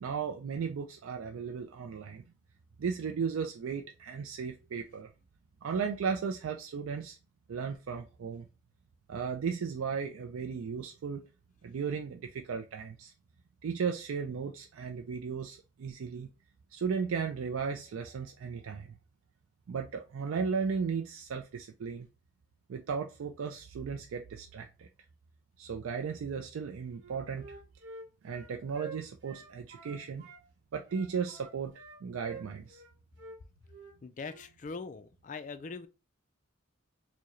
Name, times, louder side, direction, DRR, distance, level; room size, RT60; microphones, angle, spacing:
voice 1, 0.0-2.2 2.8-5.1 5.6-7.2 7.5-8.5 9.1-11.2 11.6-13.1 13.6-16.3 16.7-19.0 19.7-22.1 22.7-24.9 25.6-27.5 28.2-30.2 30.7-31.7 32.0-32.8, right 6 dB, 80° right, 0.4 m, -35 dB
Wind instrument woodwind instrument, 26.9-30.4 30.8-32.9 33.2-33.4 33.7-33.9 34.2-34.5, right 4 dB, 55° right, 1.0 m, -48 dB
voice 2, 34.0-35.9, left 4 dB, 35° left, 0.3 m, -41 dB
4.6 x 2.1 x 3.0 m
head